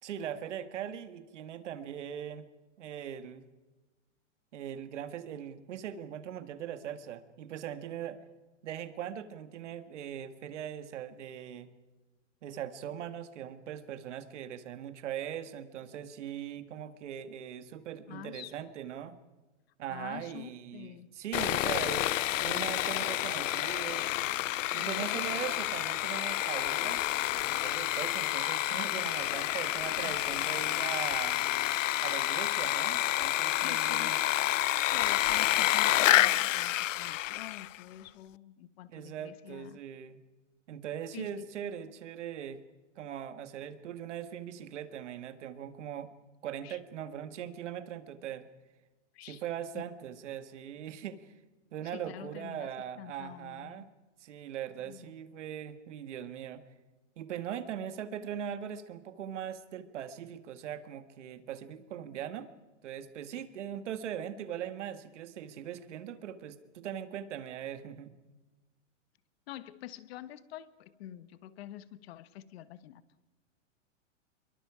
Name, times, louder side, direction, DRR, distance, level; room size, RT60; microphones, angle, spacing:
voice 1, 0.0-2.5 2.8-3.4 4.5-8.2 8.6-11.7 12.4-19.1 19.8-24.1 24.7-27.0 27.4-31.4 32.0-34.2 38.9-40.2 40.7-42.6 43.0-46.1 46.4-48.5 49.3-51.3 51.7-53.9 54.2-56.6 57.2-62.5 62.8-68.1, right 9 dB, 70° right, 10 dB, 1.9 m, -40 dB
voice 2, 18.1-18.5 19.9-21.1 24.8-25.2 28.9-29.1 30.0-30.2 33.6-34.1 34.9-39.8 41.1-41.5 46.6-46.8 49.1-49.4 49.7-49.8 51.9-53.8 54.8-55.1 63.4-63.5 69.5-73.0, left 13 dB, 55° left, 14 dB, 1.3 m, -46 dB
Sawing, 21.3-37.8, left 14 dB, 80° left, 0.6 m, -29 dB
26.0 x 23.0 x 5.0 m, 1.2 s
hypercardioid pair, 145°, 37 cm